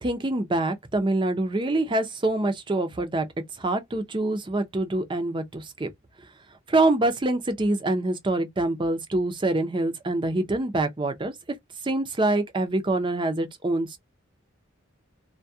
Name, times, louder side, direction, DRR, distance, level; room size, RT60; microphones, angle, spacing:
voice 1, 0.0-3.3 3.6-5.9 6.7-11.3 11.8-14.0, right 2 dB, 25° right, 0.5 m, -25 dB
2.3 x 2.2 x 2.6 m
head